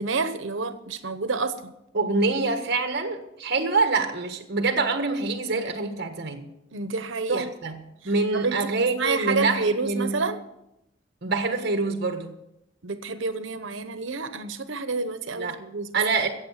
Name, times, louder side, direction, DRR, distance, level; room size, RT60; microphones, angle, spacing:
voice 1, 0.0-1.7 6.7-7.4 8.0-10.4 12.8-16.0, right 4 dB, 80° right, 11 dB, 0.9 m, -29 dB
voice 2, 1.9-6.4 7.3-10.2 11.2-12.3 15.4-15.6 15.9-16.3, right 3 dB, 55° right, 6 dB, 1.4 m, -25 dB
15.0 x 8.3 x 7.3 m, 0.86 s
head